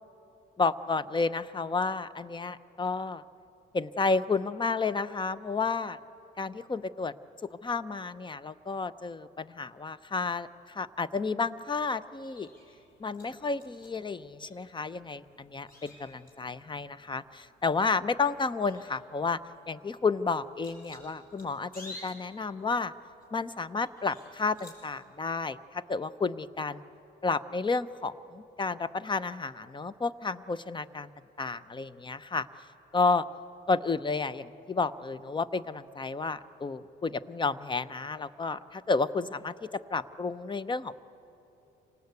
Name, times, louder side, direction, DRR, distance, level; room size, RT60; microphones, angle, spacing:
voice 1, 0.6-3.2 3.7-6.0 6.4-7.1 7.4-12.5 13.0-19.4 19.7-22.9 23.3-26.8 27.2-31.1 31.4-32.5 32.9-33.3 33.7-40.9, left 4 dB, 25° left, 15 dB, 0.7 m, -31 dB
sound 1, 12.1-24.9, left 1 dB, 45° left, 6.9 m, -54 dB
26.5 x 18.5 x 8.3 m, 3.0 s
cardioid pair, 90°, 20 cm